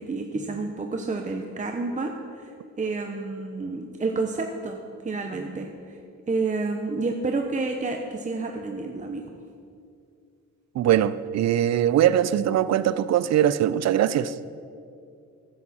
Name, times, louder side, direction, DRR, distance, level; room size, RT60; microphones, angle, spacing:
voice 1, 0.0-2.5 2.8-4.8 5.0-6.0 6.3-9.2, right 3 dB, 25° right, 0.9 m, -29 dB
voice 2, 10.7-14.3, right 11 dB, 60° right, 0.5 m, -21 dB
14.0 x 11.0 x 4.3 m
cardioid pair, 90°, 30 cm